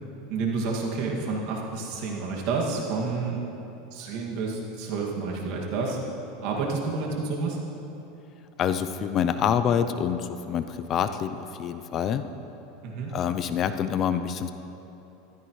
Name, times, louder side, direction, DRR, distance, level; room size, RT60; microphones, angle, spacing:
voice 1, 0.3-3.4 3.9-6.0 6.4-7.6 12.8-13.1, right 4 dB, 60° right, -1 dB, 2.1 m, -29 dB
voice 2, 8.6-12.3 13.1-14.5, left 8 dB, 40° left, 10 dB, 0.5 m, -26 dB
14.0 x 13.0 x 3.2 m, 3.0 s
supercardioid pair, 120°, 0 cm